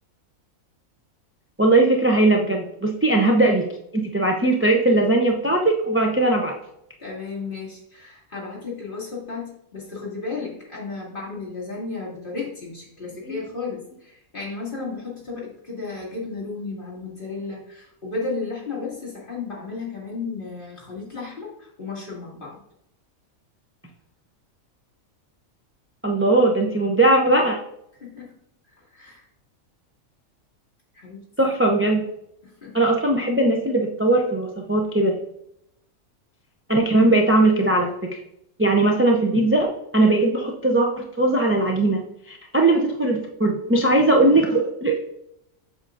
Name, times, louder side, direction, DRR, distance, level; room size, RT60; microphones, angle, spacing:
voice 1, 1.6-3.7 3.9-6.6 13.3-13.4 26.0-27.6 31.4-32.0 32.7-35.2 36.7-38.2 38.6-42.0 42.3-45.0, right 2 dB, 20° right, 1 dB, 0.4 m, -19 dB
voice 2, 7.0-22.6 28.0-28.3 28.8-29.2 30.9-31.3 32.4-32.8, left 4 dB, 40° left, -5 dB, 2.5 m, -34 dB
7.9 x 6.6 x 2.5 m, 0.77 s
omnidirectional pair, 1.4 m